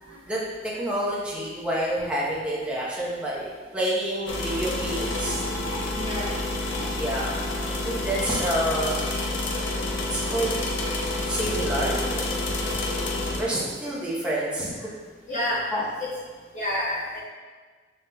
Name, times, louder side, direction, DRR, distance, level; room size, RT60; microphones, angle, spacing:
voice 1, 0.0-3.5 3.7-5.7 6.9-7.3 7.8-9.0 9.7-9.8 10.1-10.5 11.3-12.8 13.4-14.9 15.7-15.8, right 1 dB, 5° right, -7 dB, 0.8 m, -28 dB
sound 1, 4.3-13.4, left 2 dB, 80° left, 0.6 m, -28 dB
voice 2, 5.9-6.3 15.3-15.6 16.0-16.1 16.5-17.2, left 1 dB, 40° left, -7 dB, 0.8 m, -28 dB
5.5 x 3.5 x 2.2 m, 1.5 s
head